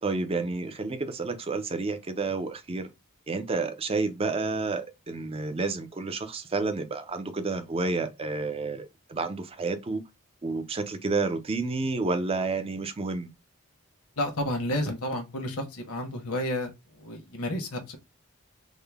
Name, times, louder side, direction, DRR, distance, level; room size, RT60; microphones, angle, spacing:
voice 1, 0.0-2.9 3.3-10.0 10.4-13.3, right 3 dB, 25° right, 0.5 m, -30 dB
voice 2, 14.2-16.7 17.0-18.0, left 1 dB, 70° left, 1.1 m, -31 dB
3.7 x 2.1 x 3.4 m
head